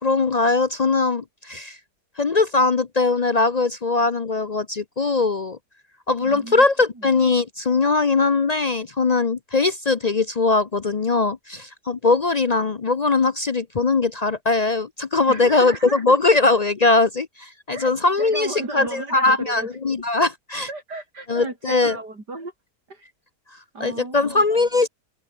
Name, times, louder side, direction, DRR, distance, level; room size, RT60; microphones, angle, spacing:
voice 1, 0.0-1.8 2.2-5.6 6.1-20.7 21.3-22.0 23.8-24.9, left 3 dB, 50° left, 0.4 m, -20 dB
voice 2, 6.2-6.6 7.0-7.1 15.3-16.2 17.7-19.7 20.7-22.5 22.9-23.0 23.7-24.4, right 2 dB, 75° right, 6.6 m, -35 dB
open air
omnidirectional pair, 1.8 m